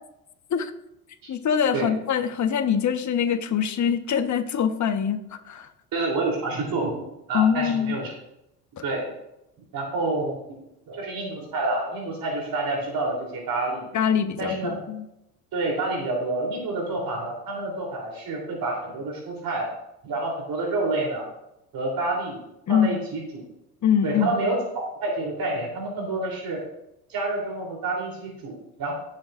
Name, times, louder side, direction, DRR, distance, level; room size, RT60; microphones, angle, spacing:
voice 1, 1.3-5.7 7.3-8.0 8.8-8.9 13.9-15.0 22.7-23.0 23.8-24.4, left 8 dB, 40° left, 8 dB, 1.3 m, -24 dB
voice 2, 5.9-8.1 8.8-9.2 9.7-10.4 10.9-13.9 14.4-14.8 15.5-19.7 20.0-21.3 21.7-22.4 22.7-23.4 24.0-26.6 27.1-28.9, right 2 dB, 45° right, -1 dB, 3.6 m, -28 dB
17.5 x 7.4 x 2.6 m, 0.87 s
hypercardioid pair, 70°, 46 cm